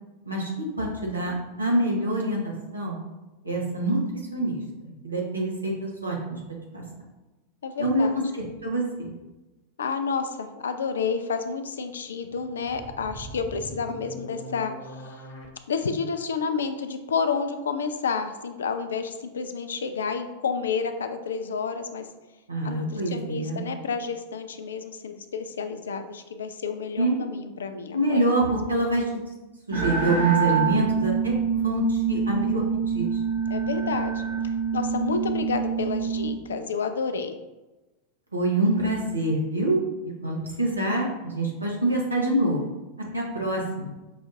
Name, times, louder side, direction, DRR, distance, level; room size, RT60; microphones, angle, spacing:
voice 1, 0.3-3.0 3.4-4.6 5.0-6.4 6.7-6.8 7.8-8.1 8.3-9.1 22.5-23.6 27.0-27.3 27.9-29.2 29.7-32.6 32.9-33.1 38.3-39.8 40.2-42.6 43.1-43.9, right 1 dB, 80° right, -2 dB, 0.9 m, -25 dB
voice 2, 7.6-8.2 9.8-14.7 15.7-22.1 22.6-28.2 33.5-34.2 34.7-37.4, left 5 dB, 65° left, 8 dB, 0.3 m, -30 dB
sound 1, 12.2-15.5, equal, 45° left, 0.8 m, -41 dB
sound 2, 29.7-36.4, right 6 dB, 55° right, 1.0 m, -26 dB
5.6 x 2.5 x 2.5 m, 1.1 s
figure-of-eight pair, 90°, 0 cm